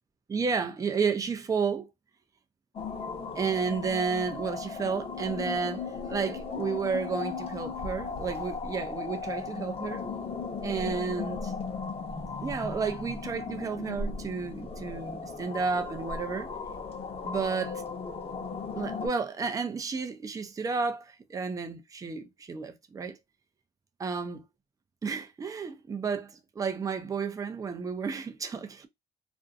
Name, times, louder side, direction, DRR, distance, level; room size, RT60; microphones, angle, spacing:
voice 1, 0.3-1.9 3.0-10.0 10.6-11.5 12.4-16.5 17.2-17.8 18.8-23.2 24.0-24.5 25.0-28.9, right 5 dB, 20° right, 0.4 m, -32 dB
sound 1, 2.7-19.1, left 4 dB, 35° left, 0.8 m, -36 dB
2.5 x 2.2 x 2.5 m
cardioid pair, 110°, 17 cm